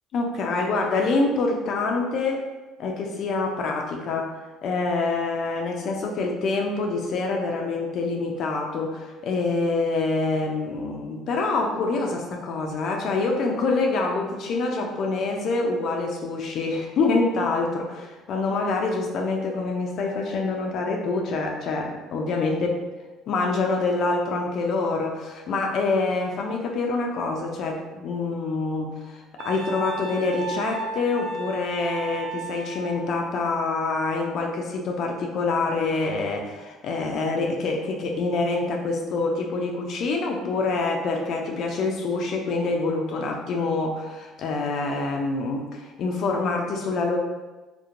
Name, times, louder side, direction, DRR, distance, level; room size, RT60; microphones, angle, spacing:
voice 1, 0.1-2.4 2.8-22.8 23.3-47.2, left 3 dB, 60° left, 1 dB, 0.3 m, -26 dB
Wind instrument woodwind instrument, 29.4-33.0, right 3 dB, 65° right, 0.3 m, -34 dB
2.8 x 2.1 x 2.4 m, 1.2 s
supercardioid pair, 95°, 0 cm